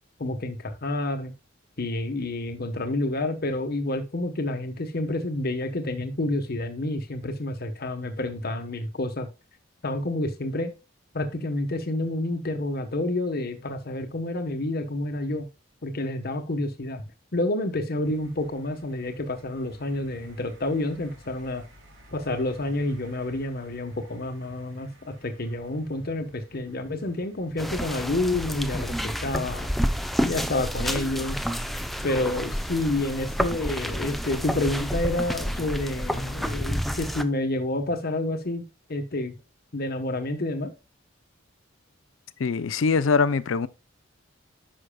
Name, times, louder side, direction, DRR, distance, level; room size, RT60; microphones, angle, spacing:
voice 1, 0.2-1.3 1.8-9.3 9.8-10.7 11.1-15.5 15.8-17.0 17.3-21.6 22.1-29.7 30.2-31.4 32.0-38.6 38.9-39.4 39.7-40.7, left 2 dB, 50° left, 1.1 m, -29 dB
sound 1, 18.0-36.4, equal, 70° right, 2.3 m, -51 dB
sound 2, 27.6-37.2, equal, ahead, 0.5 m, -29 dB
voice 2, 42.4-43.7, left 5 dB, 85° left, 0.5 m, -22 dB
10.0 x 6.2 x 2.2 m
head